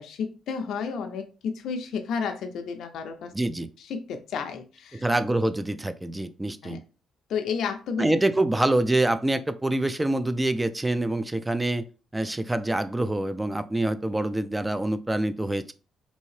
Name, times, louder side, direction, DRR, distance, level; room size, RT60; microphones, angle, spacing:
voice 1, 0.0-3.3 3.8-5.0 6.6-6.8 7.3-8.0, left 6 dB, 75° left, 0.4 m, -32 dB
voice 2, 3.3-3.7 4.9-6.8 8.0-11.9 12.1-15.7, right 1 dB, 10° right, 0.3 m, -26 dB
2.7 x 2.7 x 3.1 m
cardioid pair, 90°, 0 cm